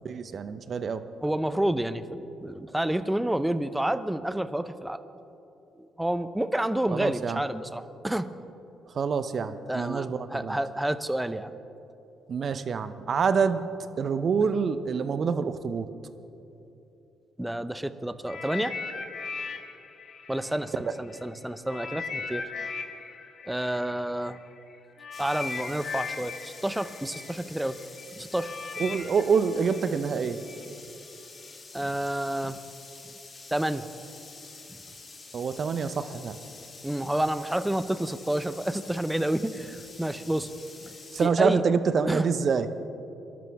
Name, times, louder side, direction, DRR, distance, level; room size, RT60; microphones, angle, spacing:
voice 1, 0.0-1.0 6.9-7.4 8.9-10.6 12.3-13.6 14.0-15.9 28.8-30.4 35.3-36.4 41.1-42.7, right 5 dB, 55° right, 11 dB, 0.8 m, -26 dB
voice 2, 1.2-5.0 5.8-8.3 9.7-11.5 17.4-18.7 20.3-22.4 23.5-24.4 25.2-27.8 28.1-28.5 31.7-32.6 33.5-33.8 36.8-40.5 40.8-41.6 42.1-42.3, right 1 dB, 10° right, 13 dB, 0.8 m, -29 dB
sound 1, 18.3-21.2 21.7-30.7 31.4-31.5, left 5 dB, 55° left, 1.5 m, -38 dB
sound 2, 25.1-41.3, left 3 dB, 40° left, 2.6 m, -47 dB
23.0 x 12.5 x 3.6 m, 2.9 s
hypercardioid pair, 50°, 0 cm